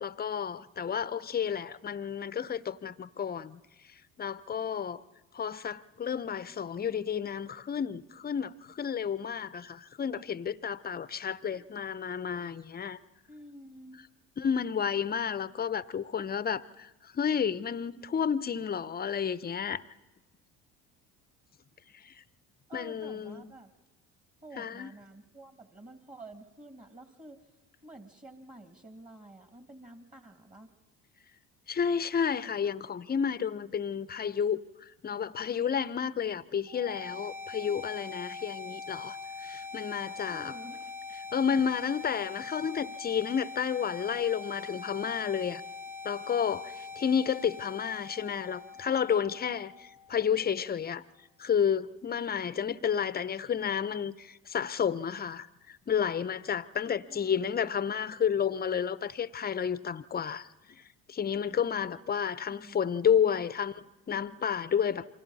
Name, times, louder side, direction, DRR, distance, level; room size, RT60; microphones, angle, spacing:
voice 1, 0.0-3.6 4.2-5.0 5.3-13.0 14.4-19.8 21.9-22.1 22.7-23.5 24.6-24.9 31.7-40.5 41.3-45.6 46.0-51.0 51.4-60.5 61.1-65.1, left 7 dB, 25° left, 0.7 m, -31 dB
voice 2, 13.3-14.0 22.7-23.7 24.4-27.4 27.8-30.7 40.3-40.8 57.0-57.5 62.5-63.5, right 1 dB, 25° right, 2.3 m, -50 dB
sound 1, 36.7-50.6, left 4 dB, 5° right, 0.7 m, -43 dB
28.0 x 24.0 x 4.1 m
supercardioid pair, 75°, 35 cm